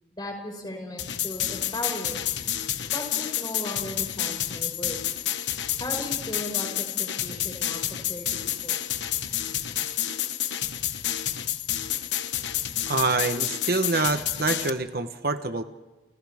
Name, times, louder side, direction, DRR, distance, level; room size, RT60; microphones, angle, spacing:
voice 1, 0.2-2.3 2.9-5.0 5.8-8.8, left 1 dB, 25° left, 2 dB, 5.7 m, -36 dB
sound 1, 1.0-14.7, left 11 dB, 85° left, 1.1 m, -29 dB
voice 2, 12.9-15.6, right 3 dB, 55° right, 8 dB, 1.1 m, -26 dB
29.5 x 29.5 x 3.6 m, 1.2 s
head